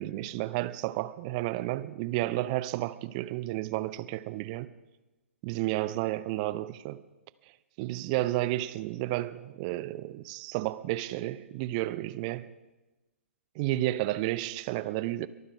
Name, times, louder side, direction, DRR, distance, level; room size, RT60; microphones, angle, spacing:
voice 1, 0.0-4.7 5.4-7.0 7.8-12.5 13.6-15.3, right 16 dB, 30° right, 0.5 m, -31 dB
22.5 x 9.6 x 5.8 m
figure-of-eight pair, 125°, 8 cm